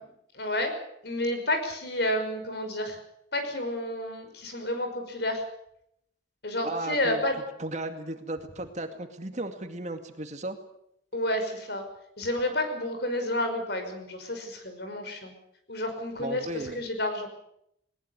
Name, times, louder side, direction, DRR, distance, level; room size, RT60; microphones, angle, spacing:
voice 1, 0.3-0.7 1.0-3.0 3.3-5.4 6.4-7.4 11.1-11.9 12.2-15.3 15.7-17.3, left 1 dB, 60° left, 6 dB, 5.7 m, -30 dB
voice 2, 6.6-7.2 7.6-10.6 16.2-16.8, right 1 dB, 40° right, 7 dB, 2.2 m, -35 dB
20.5 x 20.0 x 8.2 m, 0.74 s
head